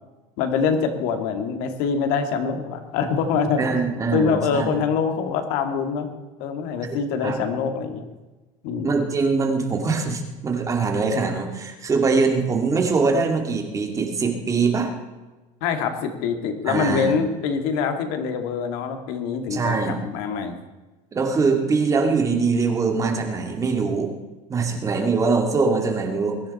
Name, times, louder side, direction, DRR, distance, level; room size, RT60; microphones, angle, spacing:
voice 1, 0.4-3.7 4.1-6.1 6.4-8.0 8.6-8.9 15.6-20.5, left 6 dB, 65° left, 6 dB, 2.3 m, -24 dB
voice 2, 3.6-4.8 7.2-7.4 8.8-14.9 16.7-17.1 19.5-20.0 21.1-24.1 24.5-26.4, right 4 dB, 20° right, 3 dB, 2.3 m, -22 dB
22.0 x 10.5 x 4.3 m, 1.2 s
cardioid pair, 160°, 16 cm